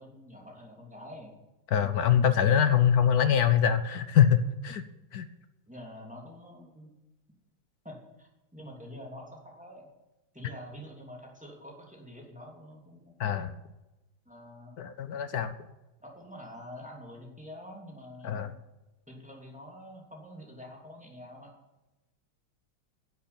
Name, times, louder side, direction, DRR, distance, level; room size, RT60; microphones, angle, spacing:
voice 1, 0.0-1.3 5.7-6.9 7.8-9.9 10.3-13.2 14.3-14.8 16.0-18.6 19.1-21.5, equal, 5° right, -1 dB, 2.7 m, -46 dB
voice 2, 1.7-4.8 5.1-5.3 13.2-13.5 14.8-15.5 18.2-18.5, left 8 dB, 70° left, 11 dB, 0.9 m, -24 dB
11.0 x 8.0 x 8.8 m, 1.0 s
omnidirectional pair, 2.3 m